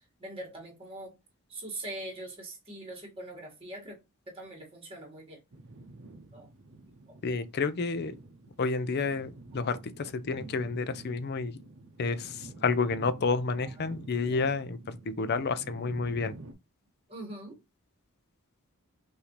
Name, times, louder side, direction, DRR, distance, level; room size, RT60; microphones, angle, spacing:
voice 1, 0.2-1.1 1.5-4.0 4.3-5.4 6.3-6.5 7.1-7.2 13.8-14.4 17.1-17.6, right 1 dB, 25° right, 2.1 m, -42 dB
sound 1, 5.5-16.5, right 2 dB, 60° right, 0.7 m, -48 dB
voice 2, 7.2-8.2 8.6-11.6 12.0-16.3, left 4 dB, 50° left, 0.5 m, -30 dB
5.8 x 2.7 x 3.2 m
head